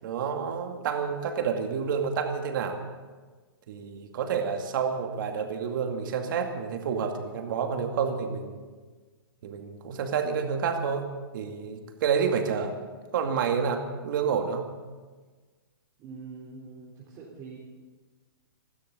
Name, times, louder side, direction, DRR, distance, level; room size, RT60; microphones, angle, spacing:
voice 1, 0.0-2.8 3.7-8.6 9.4-11.1 11.3-12.7 13.1-14.7, right 6 dB, 55° right, 4 dB, 2.3 m, -29 dB
voice 2, 16.0-17.6, right 4 dB, 30° right, -6 dB, 3.8 m, -44 dB
25.5 x 12.5 x 4.0 m, 1.4 s
hypercardioid pair, 135°, 13 cm